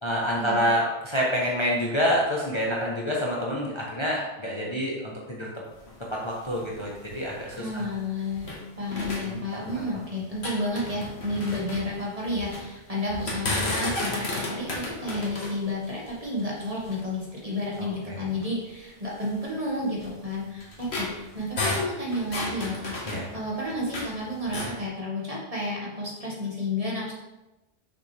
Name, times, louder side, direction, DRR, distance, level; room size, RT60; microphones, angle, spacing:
voice 1, 0.0-5.5 6.2-7.9 9.2-9.4 9.7-9.8 17.8-18.2 23.1-23.2, equal, 25° left, -4 dB, 1.0 m, -27 dB
sound 1, 5.7-8.6 8.9-10.0 10.3-12.7 13.1-17.1 17.7-17.8 18.3-18.5 19.2-24.1 24.4-24.8, left 2 dB, 65° left, 1.7 m, -33 dB
voice 2, 7.6-27.1, left 1 dB, 30° right, -5 dB, 1.9 m, -31 dB
6.5 x 6.2 x 3.4 m, 1.0 s
omnidirectional pair, 1.2 m